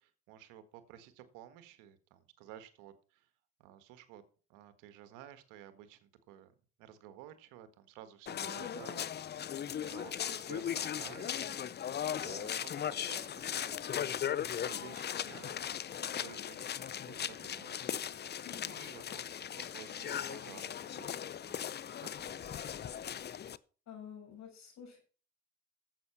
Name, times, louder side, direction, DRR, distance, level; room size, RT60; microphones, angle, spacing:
voice 1, 0.0-3.3 3.6-4.2 4.5-6.5 6.8-9.3 9.7-11.9 12.1-17.7 18.6-22.7, right 11 dB, 85° right, 11 dB, 1.6 m, -54 dB
sound 1, 8.3-23.6, left 9 dB, 35° left, 0.5 m, -38 dB
voice 2, 18.4-18.7 23.9-25.0, left 8 dB, 65° left, 2 dB, 6.9 m, -49 dB
11.0 x 7.9 x 5.8 m, 0.39 s
supercardioid pair, 80°, 30 cm